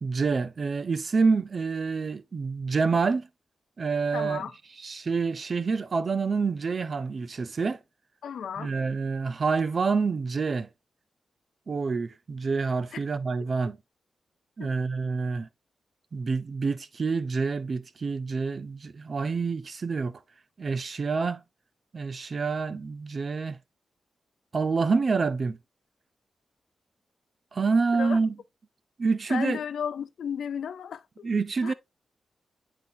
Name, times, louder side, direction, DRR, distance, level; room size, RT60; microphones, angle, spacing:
voice 1, 0.0-3.3 3.8-4.4 4.8-7.8 8.6-10.7 11.7-13.8 14.6-15.5 16.1-20.2 20.6-21.4 21.9-23.6 24.5-25.6 27.5-28.3 29.0-29.6 31.2-31.7, right 4 dB, 45° right, 0.6 m, -27 dB
voice 2, 4.1-4.5 8.2-8.7 12.9-13.0 14.6-14.7 27.9-28.2 29.3-31.3 31.6-31.7, left 8 dB, 85° left, 0.5 m, -34 dB
8.8 x 4.0 x 2.8 m
cardioid pair, 95°, 0 cm